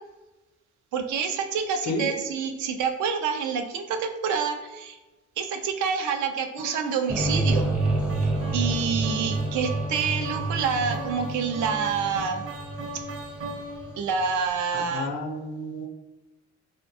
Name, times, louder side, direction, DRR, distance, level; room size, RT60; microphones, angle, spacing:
voice 1, 0.9-5.0 5.4-7.7 8.5-12.5 14.0-15.1, right 6 dB, 75° right, 7 dB, 0.4 m, -27 dB
sound 1, 6.6-14.0, right 2 dB, 45° right, 0.8 m, -39 dB
sound 2, 7.1-14.2, right 2 dB, 5° right, 0.4 m, -28 dB
voice 2, 14.7-15.9, left 2 dB, 65° left, 4 dB, 0.5 m, -31 dB
2.5 x 2.1 x 2.6 m, 1.1 s
cardioid pair, 90°, 30 cm